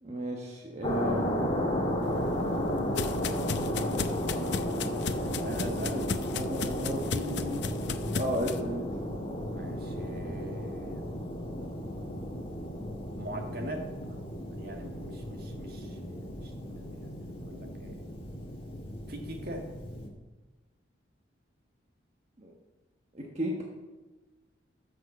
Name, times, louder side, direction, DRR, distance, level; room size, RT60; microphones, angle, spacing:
voice 1, 0.0-1.5 6.3-7.7 8.1-9.0 22.4-22.5 23.1-23.6, equal, 35° right, -1 dB, 1.2 m, -34 dB
sound 1, 0.8-20.1, equal, 30° left, 1.7 m, -34 dB
sound 2, 2.0-8.6, left 5 dB, 60° left, 0.6 m, -36 dB
voice 2, 5.3-6.1 9.5-11.0 13.2-14.3 14.5-18.0 19.1-19.7, right 1 dB, 50° right, 2 dB, 1.7 m, -42 dB
11.0 x 6.7 x 6.9 m, 1.2 s
head